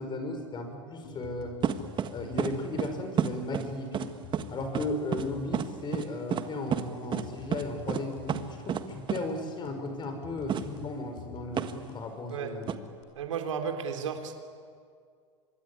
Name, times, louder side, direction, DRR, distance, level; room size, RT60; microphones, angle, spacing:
voice 1, 0.0-1.5 2.1-4.2 4.5-12.7, left 2 dB, 30° left, 6 dB, 5.7 m, -35 dB
sound 1, 1.0-13.0, left 7 dB, 55° left, 5.6 m, -48 dB
sound 2, 1.6-2.1 2.4-2.5 2.8-2.9 3.2-3.7 3.9-4.1 4.3-4.4 4.7-4.9 5.1-5.2 5.5-5.7 5.9-6.1 6.3-6.4 6.7-6.8 7.1-7.2 7.5-7.6 7.9-8.0 8.3-8.4 8.7-8.8 9.1-9.2 10.5-10.6 11.6-11.7 12.7-12.8, right 8 dB, 30° right, 1.6 m, -29 dB
voice 2, 13.1-14.3, right 6 dB, 85° right, 5 dB, 3.3 m, -33 dB
25.5 x 23.0 x 9.8 m, 2.2 s
hypercardioid pair, 110°, 16 cm